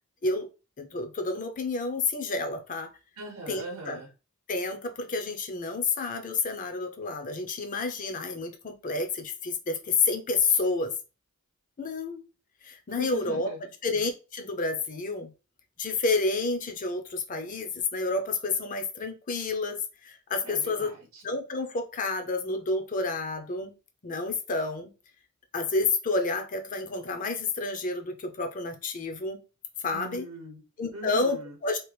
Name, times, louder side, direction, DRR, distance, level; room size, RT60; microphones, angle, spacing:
voice 1, 0.8-2.9 3.5-4.0 4.5-10.9 11.8-12.2 12.6-13.5 13.8-15.3 15.8-20.9 21.2-23.7 24.0-24.9 25.5-29.4 29.8-30.2 30.8-31.4 31.6-31.9, left 3 dB, 40° left, 6 dB, 0.6 m, -29 dB
voice 2, 3.2-4.1 13.0-13.7 20.4-21.2 29.9-30.6 30.9-31.6, right 2 dB, 90° right, 0 dB, 0.8 m, -40 dB
2.9 x 2.4 x 3.2 m, 0.31 s
head